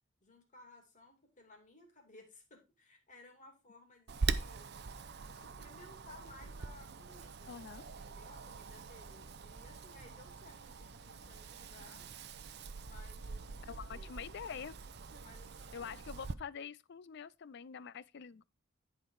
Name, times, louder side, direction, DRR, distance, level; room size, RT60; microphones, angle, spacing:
voice 1, 0.2-4.7 5.2-7.6 8.0-12.1 12.8-14.3 15.2-15.9, left 2 dB, 40° left, 2.7 m, -59 dB
Wind, 4.1-16.3, right 4 dB, 55° right, 0.7 m, -43 dB
voice 2, 7.5-7.8 13.6-14.8 15.7-18.4, left 7 dB, 55° left, 0.4 m, -46 dB
10.5 x 5.1 x 4.7 m
head